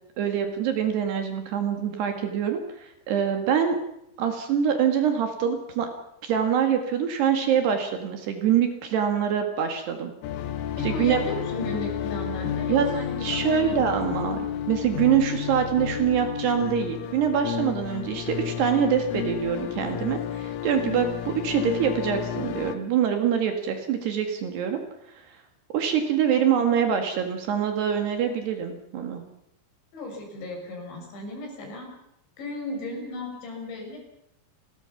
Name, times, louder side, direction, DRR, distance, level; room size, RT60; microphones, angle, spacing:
voice 1, 0.2-3.8 4.2-5.9 6.2-10.1 10.8-11.2 12.7-12.9 13.2-24.8 25.7-29.2, right 8 dB, 60° right, 5 dB, 3.5 m, -25 dB
sound 1, 10.2-22.8, left 10 dB, 80° left, 3.7 m, -31 dB
voice 2, 10.8-13.8 29.9-31.9 32.4-34.0, left 2 dB, 60° left, 2 dB, 8.3 m, -35 dB
29.5 x 21.0 x 5.9 m, 0.81 s
omnidirectional pair, 5.8 m